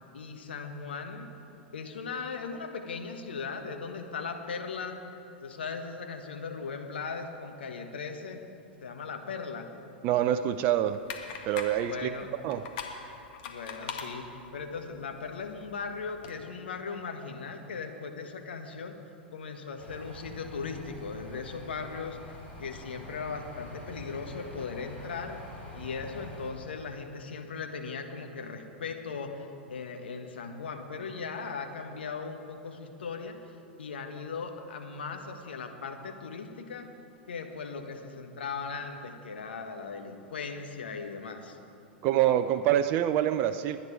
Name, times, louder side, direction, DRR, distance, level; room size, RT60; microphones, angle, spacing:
voice 1, 0.1-1.3 1.7-5.0 5.4-8.4 8.8-9.7 11.8-12.3 13.5-18.9 19.3-25.4 25.7-33.4 33.8-36.9 37.3-41.6, left 5 dB, 70° left, 5 dB, 1.4 m, -38 dB
voice 2, 10.0-11.0 11.5-12.1 12.4-12.6 42.0-43.8, right 11 dB, 40° right, 10 dB, 0.5 m, -26 dB
sound 1, 10.9-16.3, left 6 dB, 55° left, 1.7 m, -43 dB
sound 2, 19.8-26.5, left 1 dB, 25° left, 4.1 m, -46 dB
21.5 x 9.6 x 4.7 m, 2.7 s
figure-of-eight pair, 95°, 6 cm